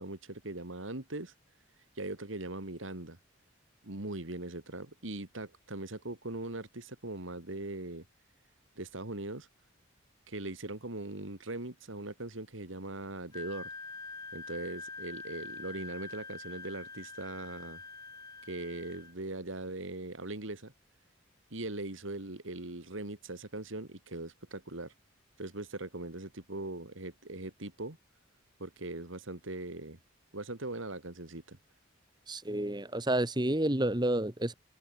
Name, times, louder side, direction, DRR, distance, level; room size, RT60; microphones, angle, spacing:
voice 1, 0.0-1.3 2.0-3.2 3.8-8.0 8.8-9.5 10.3-13.7 14.3-17.8 18.5-20.7 21.5-24.9 25.4-28.0 28.6-30.0 30.3-31.6, right 2 dB, 75° right, 2.6 m, -40 dB
Wind instrument woodwind instrument, 13.3-19.1, left 3 dB, 20° left, 7.7 m, -45 dB
voice 2, 32.3-34.5, right 1 dB, 20° right, 1.7 m, -30 dB
open air
head